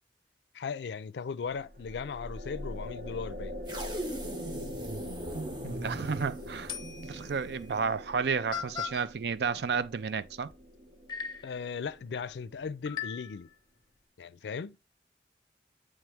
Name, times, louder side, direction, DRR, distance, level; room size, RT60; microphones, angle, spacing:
voice 1, 0.5-3.5 11.4-13.5 14.2-14.8, left 5 dB, 80° left, 0.4 m, -37 dB
sound 1, 1.6-12.9, equal, 60° right, 0.9 m, -43 dB
sound 2, 3.7-7.9, right 1 dB, 25° right, 0.8 m, -40 dB
voice 2, 5.6-6.7 7.0-10.5, right 5 dB, 75° right, 0.4 m, -32 dB
sound 3, 6.1-6.2 6.7-7.3 8.1-8.2 8.5-9.0 10.5-10.6 11.1-11.6 12.8-13.5, left 7 dB, 25° left, 0.7 m, -38 dB
8.8 x 3.3 x 3.4 m
head